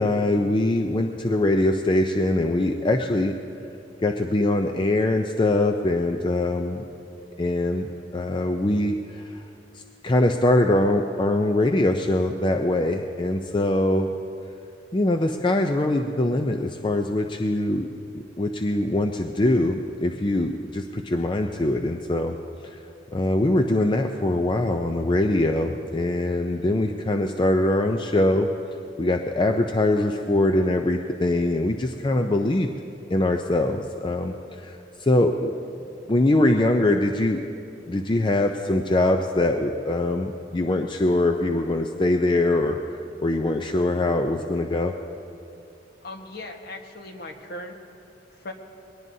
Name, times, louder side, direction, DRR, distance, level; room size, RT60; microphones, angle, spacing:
voice 1, 0.0-3.3 4.0-6.8 7.4-9.4 10.0-14.1 14.9-17.9 18.4-22.4 22.6-22.8 23.1-28.5 29.0-32.7 33.1-35.5 36.1-37.4 37.9-44.9, left 1 dB, 25° left, 4 dB, 0.5 m, -23 dB
voice 2, 46.0-47.8 48.4-48.5, left 1 dB, 55° left, 3 dB, 1.3 m, -38 dB
22.0 x 18.5 x 2.7 m, 2.7 s
head